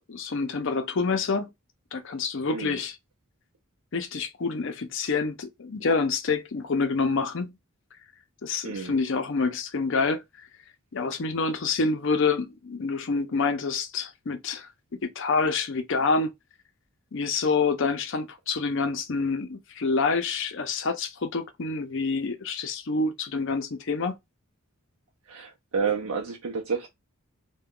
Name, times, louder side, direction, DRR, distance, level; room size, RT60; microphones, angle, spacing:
voice 1, 0.1-1.5 1.9-3.0 3.9-7.5 8.4-10.2 10.9-14.7 15.0-16.3 17.1-24.2, left 4 dB, 55° left, 0.5 m, -27 dB
voice 2, 25.3-26.9, right 5 dB, 80° right, 0.5 m, -30 dB
2.3 x 2.2 x 3.5 m
head